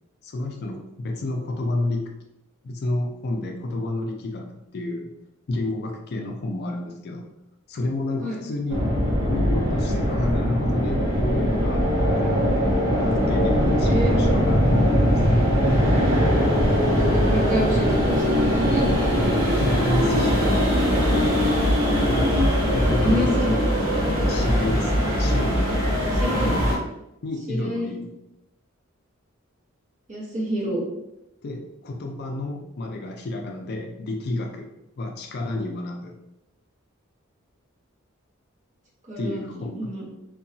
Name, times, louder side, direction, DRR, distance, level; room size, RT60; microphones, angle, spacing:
voice 1, 0.2-2.1 2.6-5.1 5.5-7.3 7.7-8.9 9.2-12.4 13.0-15.2 19.5-20.5 22.1-22.4 22.7-23.6 24.3-25.7 26.4-26.7 27.2-28.1 31.4-34.7 35.0-36.2 39.2-39.9, left 2 dB, 50° left, 3 dB, 0.4 m, -30 dB
sound 1, 8.7-26.8, equal, 75° right, 0.8 m, -21 dB
voice 2, 16.8-18.9 22.7-23.5 26.2-26.5 27.5-27.9 30.1-30.8 39.1-40.1, equal, 35° right, -5 dB, 0.9 m, -28 dB
2.7 x 2.2 x 2.6 m, 0.86 s
head